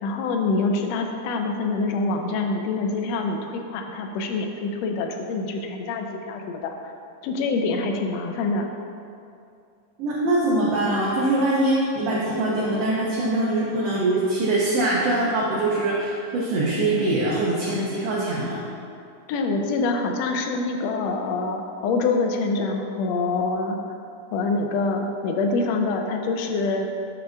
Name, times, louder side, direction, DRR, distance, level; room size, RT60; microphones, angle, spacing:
voice 1, 0.0-6.9 7.2-8.7 19.3-23.8 24.3-26.9, left 3 dB, 75° left, 3 dB, 1.6 m, -25 dB
voice 2, 10.0-18.6, right 2 dB, 60° right, -6 dB, 2.0 m, -23 dB
13.0 x 5.4 x 3.5 m, 2.5 s
omnidirectional pair, 3.6 m